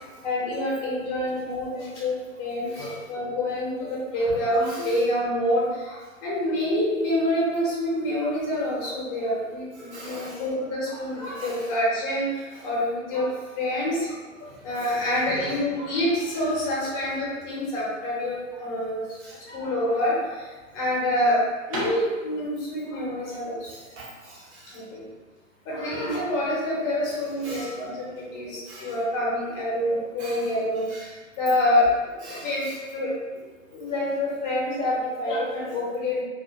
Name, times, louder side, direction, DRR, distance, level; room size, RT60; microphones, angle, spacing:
voice 1, 0.2-12.3 12.6-13.3 13.6-14.0 14.6-19.0 19.5-20.1 20.7-21.4 21.7-23.7 24.7-25.0 25.7-31.1 31.4-32.1 32.4-32.6 32.9-33.1 33.7-36.2, left 1 dB, 25° left, -6 dB, 0.9 m, -26 dB
voice 2, 2.7-3.0 4.6-5.0 9.7-10.4 11.2-11.7 12.5-12.7 14.5-15.5 16.8-16.9 19.2-19.4 23.7-24.8 27.1-27.8 28.7-29.0 30.2-30.5 30.9-31.1 32.2-32.8, right 1 dB, 55° right, -6 dB, 1.1 m, -43 dB
sound 1, 21.6-25.5, right 1 dB, 25° right, 0.4 m, -39 dB
2.5 x 2.4 x 2.8 m, 1.3 s
figure-of-eight pair, 120°, 41 cm